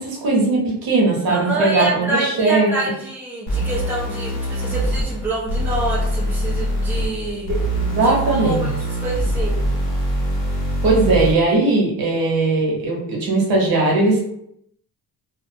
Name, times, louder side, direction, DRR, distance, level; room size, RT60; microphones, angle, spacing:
voice 1, 0.0-2.7 7.8-8.7 10.8-14.2, right 3 dB, 65° right, -2 dB, 0.9 m, -19 dB
voice 2, 1.3-7.5 7.9-8.7 9.0-9.6, right 1 dB, 5° right, -7 dB, 0.5 m, -26 dB
sound 1, 3.5-11.5, right 1 dB, 75° left, 1.3 m, -23 dB
2.4 x 2.2 x 2.6 m, 0.75 s
cardioid pair, 180°, 38 cm